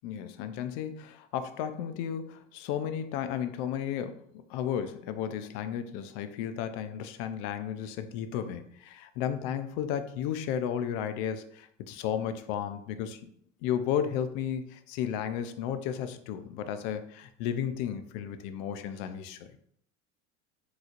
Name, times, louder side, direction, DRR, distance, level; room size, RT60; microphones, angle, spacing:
voice 1, 0.0-4.2 4.5-13.3 13.6-19.6, left 9 dB, 50° left, 10 dB, 0.5 m, -33 dB
3.8 x 3.1 x 2.5 m, 0.68 s
hypercardioid pair, 100°, 38 cm